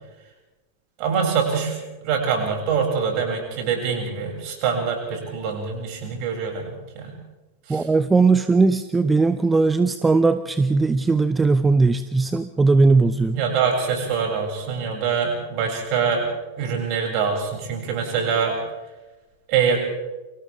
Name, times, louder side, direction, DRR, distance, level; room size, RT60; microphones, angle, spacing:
voice 1, 1.0-1.8 2.0-7.2 7.7-7.8 13.3-16.3 16.6-18.6 19.5-19.8, right 6 dB, 45° right, 1 dB, 7.0 m, -24 dB
voice 2, 7.7-13.4, right 3 dB, 10° right, 12 dB, 0.7 m, -18 dB
30.0 x 25.5 x 3.6 m, 1.1 s
figure-of-eight pair, 90°, 0 cm